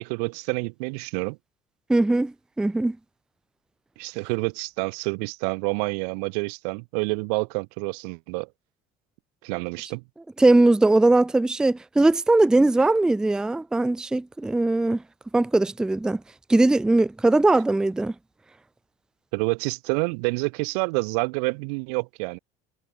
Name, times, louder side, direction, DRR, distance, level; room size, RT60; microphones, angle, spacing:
voice 1, 0.0-1.4 4.0-8.5 9.4-10.0 19.3-22.4, right 34 dB, 85° right, 3.1 m, -28 dB
voice 2, 1.9-3.0 10.4-15.0 15.3-16.2 16.5-18.1, right 2 dB, 5° right, 0.5 m, -20 dB
cardioid pair, 175°, 19 cm